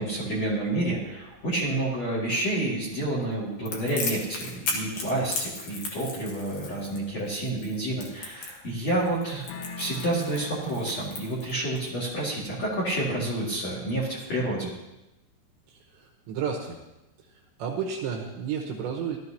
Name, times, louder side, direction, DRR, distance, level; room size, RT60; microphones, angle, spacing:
voice 1, 0.0-9.5 9.8-14.7, right 1 dB, 45° left, -5 dB, 2.2 m, -29 dB
Crackle, 3.6-11.9, left 3 dB, 65° left, 1.8 m, -35 dB
sound 1, 9.5-11.4, left 4 dB, 85° left, 3.8 m, -42 dB
voice 2, 15.7-16.8 17.2-19.2, right 7 dB, 75° right, 0 dB, 2.9 m, -32 dB
16.5 x 12.5 x 2.9 m, 0.97 s
omnidirectional pair, 6.0 m